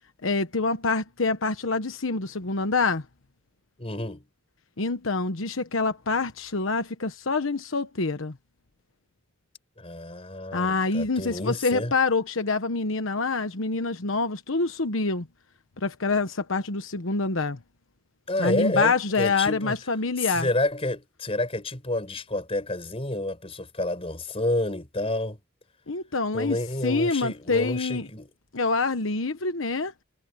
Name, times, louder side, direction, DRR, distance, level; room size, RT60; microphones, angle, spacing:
voice 1, 0.2-3.0 4.8-8.4 10.5-15.3 15.8-17.6 18.4-20.5 25.9-28.1 28.5-29.9, left 3 dB, 85° left, 1.2 m, -26 dB
voice 2, 3.8-4.3 9.8-11.9 18.3-19.8 20.2-25.4 26.3-28.3, left 1 dB, 30° left, 4.9 m, -29 dB
head